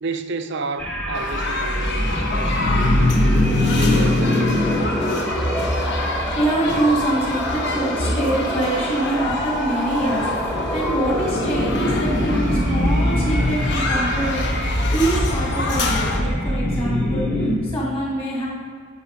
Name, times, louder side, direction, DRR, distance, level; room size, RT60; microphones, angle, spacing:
voice 1, 0.0-3.2 3.7-4.6, right 3 dB, 55° right, 0.5 m, -31 dB
sound 1, 0.8-17.5, left 1 dB, 5° left, 1.1 m, -23 dB
sound 2, 1.1-16.2, left 2 dB, 50° left, 1.0 m, -26 dB
voice 2, 6.0-18.5, right 1 dB, 25° left, 2.3 m, -25 dB
11.0 x 5.9 x 5.2 m
head